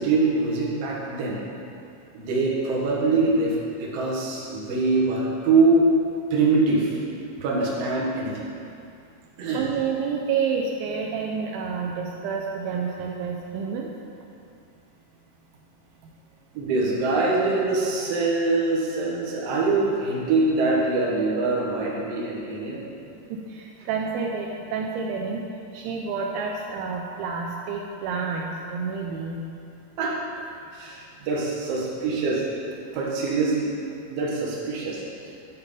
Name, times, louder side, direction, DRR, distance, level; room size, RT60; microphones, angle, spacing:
voice 1, 0.0-1.4 2.1-5.9 6.3-7.0 7.4-8.4 9.4-9.6 16.5-22.8 30.0-30.2 30.7-32.4 32.9-33.7 34.1-35.0, right 3 dB, 60° right, -5 dB, 1.7 m, -23 dB
voice 2, 9.5-13.9 23.3-25.4 25.7-29.4, right 5 dB, 80° right, 0 dB, 2.3 m, -29 dB
10.5 x 4.3 x 5.1 m, 2.5 s
omnidirectional pair, 4.5 m